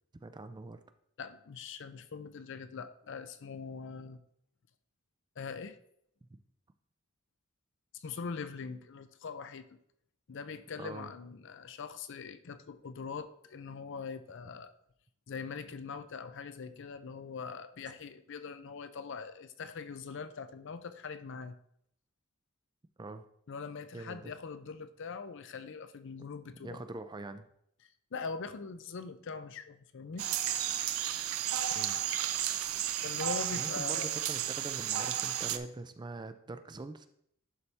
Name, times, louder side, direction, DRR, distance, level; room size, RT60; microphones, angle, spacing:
voice 1, 0.2-0.8 10.8-11.1 23.0-23.2 23.9-24.3 26.6-27.5 31.7-32.0 33.5-37.1, right 2 dB, 20° right, 10 dB, 0.4 m, -43 dB
voice 2, 1.2-4.2 5.4-5.8 7.9-9.6 10.3-14.7 15.3-21.6 23.5-26.8 28.1-30.3 33.0-34.1, left 5 dB, 60° left, 11 dB, 0.5 m, -42 dB
sound 1, 30.2-35.6, right 11 dB, 80° right, 0.5 m, -33 dB
11.0 x 4.2 x 3.3 m, 0.70 s
head